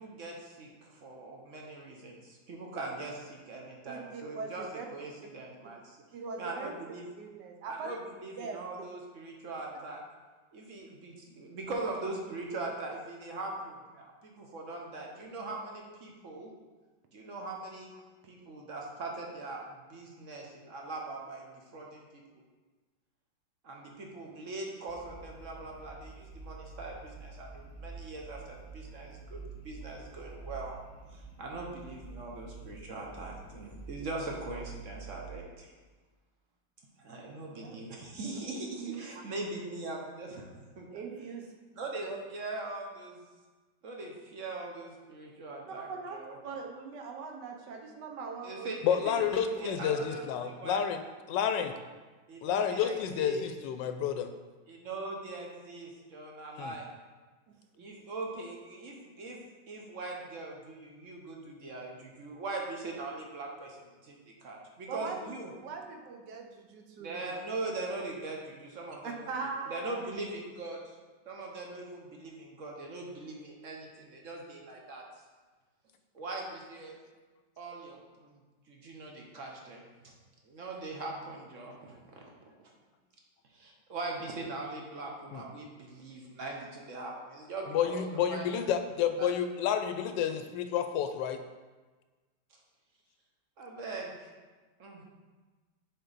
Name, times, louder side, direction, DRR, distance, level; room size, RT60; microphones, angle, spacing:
voice 1, 0.0-6.0 6.4-7.1 7.6-10.0 10.5-16.5 17.1-17.9 18.2-22.4 23.6-30.7 31.1-35.7 37.0-41.0 41.7-43.2 43.8-46.4 48.4-50.8 52.3-53.4 54.7-56.9 57.7-59.4 59.7-65.5 67.0-69.3 69.7-71.0 71.3-75.0 76.1-77.0 77.6-78.4 78.7-80.1 80.4-82.3 82.6-82.7 83.5-88.6 89.2-89.3 93.6-94.3 94.8-95.0, right 2 dB, 55° right, 0 dB, 1.1 m, -41 dB
voice 2, 3.8-4.9 6.1-6.7 7.2-8.0 8.4-8.9 37.6-37.8 38.3-39.3 40.9-41.5 42.0-42.2 45.7-46.2 46.4-49.2 49.6-50.0 64.9-65.2 65.4-67.4 69.0-70.0, right 5 dB, 75° right, 3 dB, 1.4 m, -41 dB
sound 1, 24.9-35.4, right 4 dB, 60° left, 0.4 m, -47 dB
voice 3, 48.8-51.0 51.3-51.7 52.4-54.3 56.6-56.7 85.3-85.4 87.7-91.4, left 8 dB, 85° left, 8 dB, 1.3 m, -30 dB
6.5 x 4.4 x 4.0 m, 1.3 s
omnidirectional pair, 1.9 m